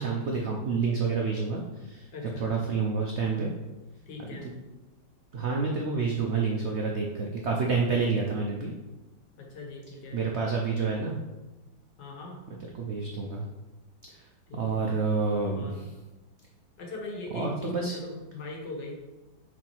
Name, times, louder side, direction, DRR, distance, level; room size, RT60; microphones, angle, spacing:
voice 1, 0.0-2.1 2.4-3.5 4.3-4.4 5.3-8.7 10.1-11.2 12.7-13.4 14.5-15.7 17.3-18.0, right 4 dB, 75° right, 0 dB, 0.6 m, -28 dB
voice 2, 2.1-2.5 4.1-4.5 9.4-10.2 12.0-12.4 14.5-14.8 15.5-15.8 16.8-19.0, left 2 dB, 75° left, 0 dB, 1.8 m, -40 dB
6.2 x 3.6 x 4.5 m, 1.1 s
omnidirectional pair, 2.0 m